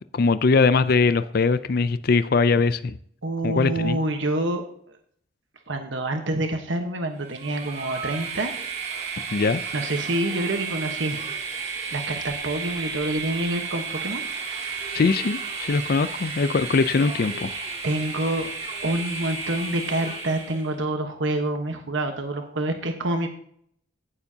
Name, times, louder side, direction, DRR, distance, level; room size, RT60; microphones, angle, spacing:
voice 1, 0.1-3.0 3.4-4.0 9.3-9.6 14.9-17.5, left 4 dB, 50° left, 0.4 m, -21 dB
voice 2, 3.2-4.6 5.7-8.6 9.7-11.3 11.9-14.2 17.8-18.5 18.8-23.3, right 1 dB, 75° right, 1.1 m, -27 dB
Train, 7.2-20.7, right 5 dB, 35° right, 2.2 m, -33 dB
16.0 x 7.1 x 2.8 m
head